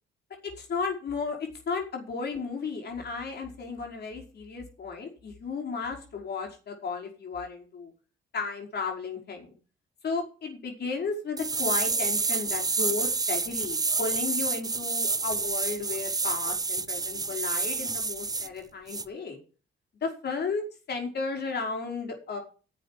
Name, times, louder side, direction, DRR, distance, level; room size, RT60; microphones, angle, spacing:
voice 1, 0.6-1.4 1.7-7.9 8.3-9.5 10.0-19.4 20.0-20.6 20.9-22.4, left 4 dB, 55° left, 2 dB, 5.2 m, -34 dB
sound 1, 11.4-18.5 18.9-19.0, right 4 dB, 20° right, 0.7 m, -29 dB
10.5 x 7.8 x 7.6 m, 0.36 s
cardioid pair, 90°, 20 cm